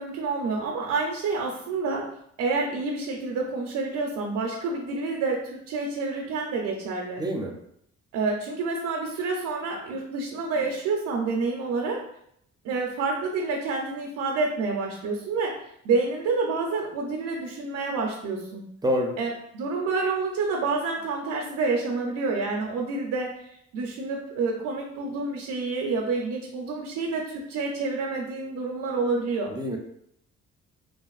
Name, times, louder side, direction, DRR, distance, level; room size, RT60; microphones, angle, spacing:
voice 1, 0.0-2.1 2.4-7.2 8.1-12.1 12.6-15.5 15.8-18.6 19.2-29.5, right 3 dB, 80° right, 0 dB, 0.5 m, -28 dB
voice 2, 7.2-7.5 18.8-19.1 29.5-29.8, equal, 15° right, 1 dB, 0.4 m, -26 dB
2.8 x 2.5 x 2.3 m, 0.72 s
cardioid pair, 90°, 30 cm